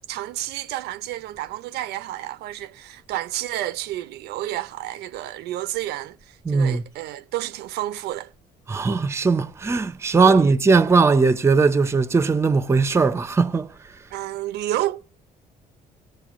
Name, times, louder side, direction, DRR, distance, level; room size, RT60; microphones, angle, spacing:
voice 1, 0.1-8.3 10.2-10.5 14.1-15.0, right 14 dB, 75° right, 0.4 m, -30 dB
voice 2, 6.5-6.8 8.7-13.7, right 4 dB, 15° right, 0.4 m, -19 dB
17.5 x 7.7 x 2.4 m
cardioid pair, 110°, 17 cm